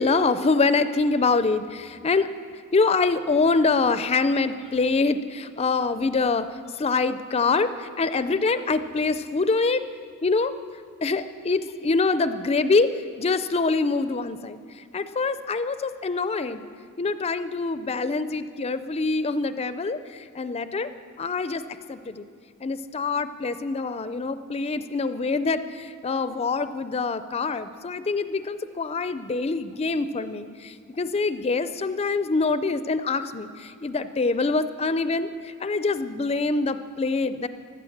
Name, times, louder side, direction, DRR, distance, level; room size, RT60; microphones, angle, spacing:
voice 1, 0.0-2.3 2.7-6.5 6.8-9.8 10.2-10.5 11.0-12.9 13.2-14.6 14.9-16.7 17.0-20.9 21.2-21.6 21.9-22.3 22.6-37.5, left 3 dB, 30° left, 12 dB, 0.4 m, -25 dB
15.0 x 12.5 x 7.2 m, 2.2 s
head